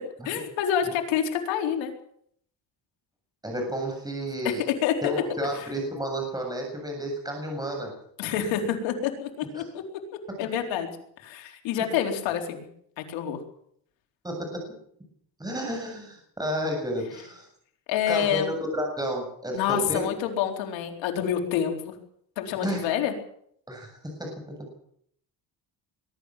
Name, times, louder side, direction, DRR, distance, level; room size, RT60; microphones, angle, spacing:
voice 1, 0.2-1.9 4.4-5.1 8.2-9.8 10.4-10.9 11.2-12.7 13.0-13.4 17.9-18.5 19.5-22.0 22.4-23.1, left 9 dB, 90° left, 3 dB, 4.2 m, -27 dB
voice 2, 3.4-4.6 5.0-7.9 9.6-9.7 14.2-14.6 15.4-17.5 18.1-20.0 22.6-22.9 23.7-23.9 24.2-24.3, equal, 10° right, 2 dB, 7.4 m, -31 dB
22.0 x 12.5 x 9.2 m, 0.67 s
cardioid pair, 100°, 44 cm